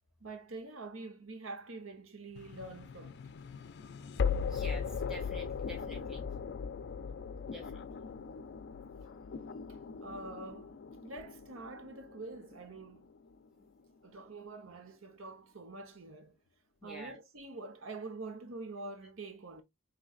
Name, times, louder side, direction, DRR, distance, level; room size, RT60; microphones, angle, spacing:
voice 1, 0.2-3.2 8.6-8.7 10.0-13.1 14.0-16.3 16.8-19.6, right 2 dB, 75° right, 0.9 m, -46 dB
sound 1, 2.4-13.4, left 6 dB, 55° left, 0.4 m, -39 dB
voice 2, 4.4-6.2 7.5-7.8 16.8-17.1, equal, ahead, 1.4 m, -48 dB
5.0 x 3.1 x 2.4 m
head